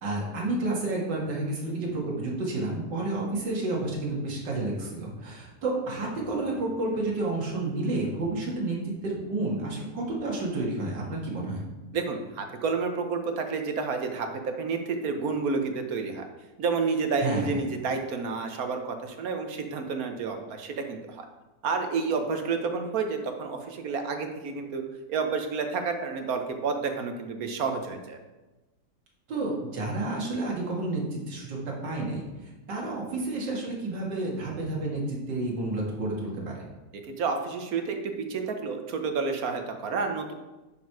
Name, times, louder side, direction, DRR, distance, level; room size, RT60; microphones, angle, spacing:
voice 1, 0.0-11.6 17.2-17.6 29.3-36.6, right 2 dB, 85° right, -3 dB, 2.4 m, -30 dB
voice 2, 11.9-16.2 16.6-21.2 21.6-24.8 25.1-28.2 37.2-38.0 38.3-40.3, right 4 dB, 60° right, 5 dB, 1.4 m, -30 dB
10.5 x 4.7 x 4.7 m, 1.1 s
omnidirectional pair, 1.9 m